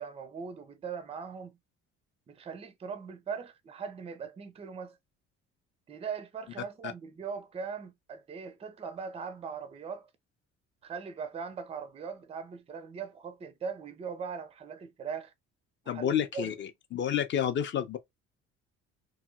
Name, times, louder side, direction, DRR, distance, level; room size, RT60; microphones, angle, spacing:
voice 1, 0.0-1.6 2.3-5.0 5.9-10.1 10.8-15.3 15.8-16.6, right 6 dB, 15° right, 0.4 m, -40 dB
voice 2, 15.9-18.0, left 9 dB, 30° left, 0.5 m, -30 dB
2.7 x 2.6 x 2.4 m
figure-of-eight pair, 50°, 37 cm